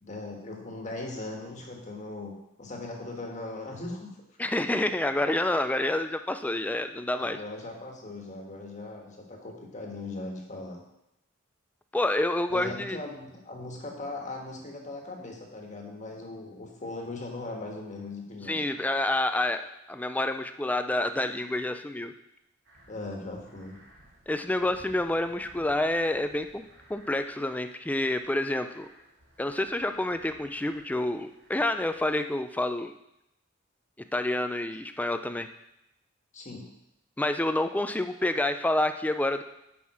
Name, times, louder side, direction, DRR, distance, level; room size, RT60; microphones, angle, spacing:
voice 1, 0.0-2.3 2.6-4.1 7.2-10.8 12.5-18.6 22.9-23.8 36.3-36.7, left 2 dB, 35° left, 1 dB, 1.5 m, -39 dB
voice 2, 4.4-7.4 11.9-13.0 18.5-19.6 19.9-22.1 24.3-26.6 26.9-28.9 29.4-32.9 34.1-35.5 37.2-39.4, left 1 dB, 5° left, 9 dB, 0.3 m, -28 dB
sound 1, 22.6-32.1, equal, 55° right, 2.2 m, -58 dB
9.5 x 5.5 x 4.3 m, 0.87 s
head